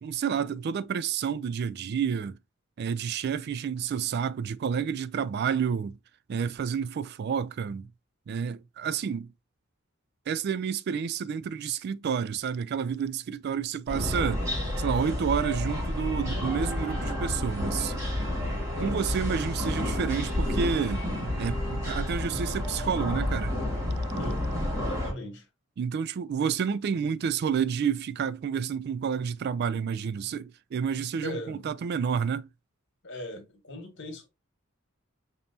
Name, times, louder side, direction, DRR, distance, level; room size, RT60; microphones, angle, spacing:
voice 1, 0.0-2.4 2.8-6.0 6.3-7.9 8.3-9.3 10.3-14.4 14.8-17.9 18.8-21.0 21.4-23.5 25.8-32.5, right 7 dB, 50° right, 0.3 m, -30 dB
sound 1, 13.9-25.1, left 1 dB, 15° right, 1.8 m, -30 dB
voice 2, 24.8-25.4 31.2-31.7 33.0-34.3, left 1 dB, 60° left, 1.7 m, -39 dB
5.2 x 2.9 x 2.7 m
head